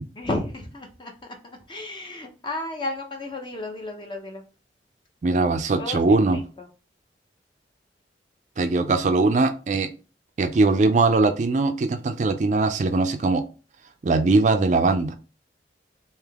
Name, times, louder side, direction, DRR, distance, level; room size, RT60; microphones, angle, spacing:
voice 1, 0.1-1.4 1.7-4.4 5.8-6.7, left 2 dB, 25° left, 3 dB, 0.7 m, -33 dB
voice 2, 5.2-6.4 8.6-9.9 10.4-13.4 14.0-15.1, right 3 dB, 45° right, 7 dB, 0.4 m, -21 dB
3.4 x 2.8 x 3.4 m, 0.35 s
head